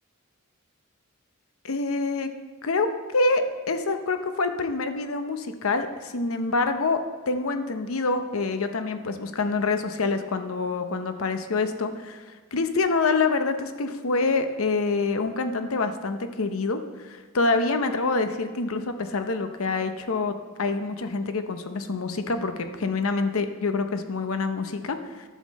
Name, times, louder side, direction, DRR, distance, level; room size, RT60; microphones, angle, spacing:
voice 1, 1.6-2.3 2.6-12.2 12.5-25.2, left 3 dB, 85° left, 8 dB, 0.8 m, -26 dB
11.0 x 7.3 x 4.2 m, 1.5 s
head